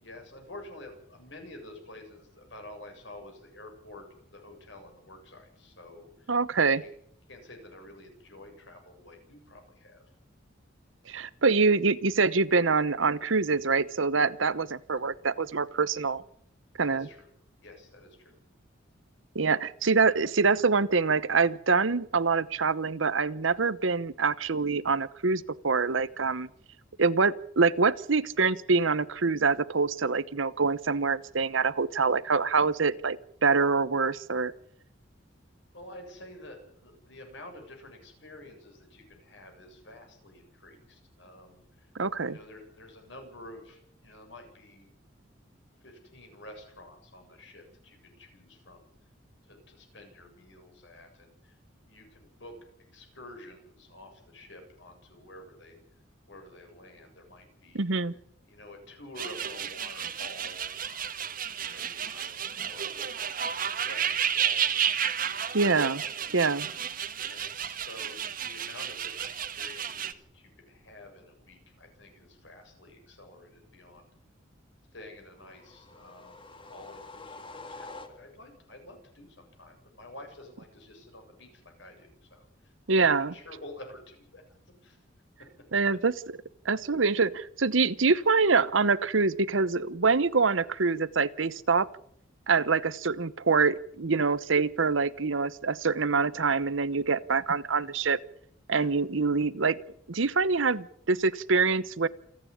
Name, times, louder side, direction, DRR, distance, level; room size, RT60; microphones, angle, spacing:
voice 1, 0.0-4.1 4.3-6.3 6.8-6.9 7.3-10.1 14.9-15.1 16.8-17.3 17.6-18.3 35.7-41.9 42.3-44.9 45.8-48.9 49.5-51.6 51.8-52.6 52.9-55.8 56.3-58.0 58.5-61.1 61.5-63.1 63.4-66.8 67.2-74.1 74.9-82.7 83.0-84.4 84.8-85.0 85.4-85.5 98.8-98.9, left 1 dB, 65° left, 4 dB, 7.5 m, -49 dB
voice 2, 6.3-6.8 11.1-16.2 16.8-17.1 19.3-26.5 27.0-34.5 41.9-42.4 57.7-58.1 65.5-66.0 66.3-66.7 82.9-83.3 85.7-86.1 86.6-91.9 92.5-98.2 98.7-99.8 100.1-102.1, right 4 dB, 80° right, 17 dB, 1.0 m, -25 dB
sound 1, 59.2-70.1, right 8 dB, 45° right, 1.5 m, -32 dB
sound 2, 75.4-78.6, left 3 dB, 25° left, 1.9 m, -47 dB
28.0 x 9.8 x 10.0 m, 0.67 s
head